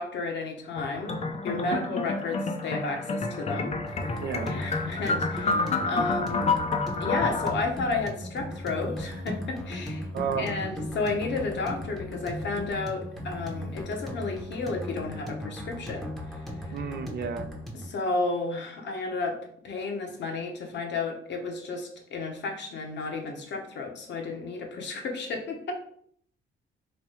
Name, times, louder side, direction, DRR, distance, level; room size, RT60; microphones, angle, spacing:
voice 1, 0.0-3.8 4.5-6.5 7.0-10.1 10.4-16.9 17.7-19.4 19.6-25.7, left 3 dB, 60° left, 2 dB, 0.9 m, -32 dB
sound 1, 0.8-7.5, left 3 dB, 35° left, 0.5 m, -29 dB
voice 2, 1.7-2.0 4.2-4.6 10.1-10.7 16.7-17.5, right 6 dB, 55° right, 7 dB, 0.5 m, -32 dB
sound 2, 3.9-17.9, equal, ahead, 0.8 m, -37 dB
3.2 x 2.3 x 4.3 m, 0.64 s
cardioid pair, 90°, 20 cm